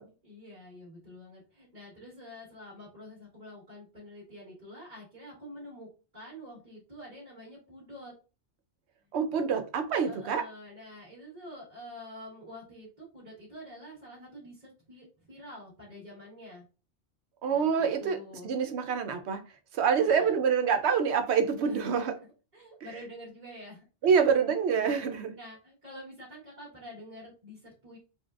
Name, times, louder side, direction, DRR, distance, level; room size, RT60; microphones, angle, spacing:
voice 1, 0.2-5.9 6.1-8.1 10.0-16.6 17.5-18.5 19.9-20.4 21.6-22.1 22.5-24.2 25.4-28.0, left 1 dB, 40° right, 1.7 m, -47 dB
voice 2, 9.1-10.4 17.4-18.2 18.4-19.4 19.7-22.1 24.0-25.3, right 6 dB, 75° right, 0.9 m, -26 dB
4.2 x 2.2 x 2.3 m
omnidirectional pair, 1.2 m